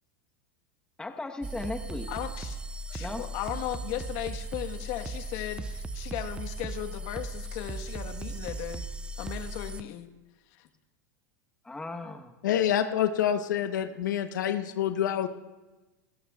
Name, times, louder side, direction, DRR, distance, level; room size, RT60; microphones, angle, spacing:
voice 1, 1.0-2.1 3.0-3.2 11.6-12.3, left 2 dB, 10° left, 5 dB, 1.1 m, -36 dB
sound 1, 1.4-9.8, right 2 dB, 10° right, 0.5 m, -37 dB
voice 2, 2.1-2.6 2.9-8.9 9.2-10.1 10.6-10.7, left 12 dB, 55° left, 6 dB, 1.3 m, -36 dB
voice 3, 12.4-15.3, left 10 dB, 85° left, 8 dB, 0.9 m, -27 dB
28.0 x 15.0 x 2.4 m, 1.1 s
supercardioid pair, 125°, 10 cm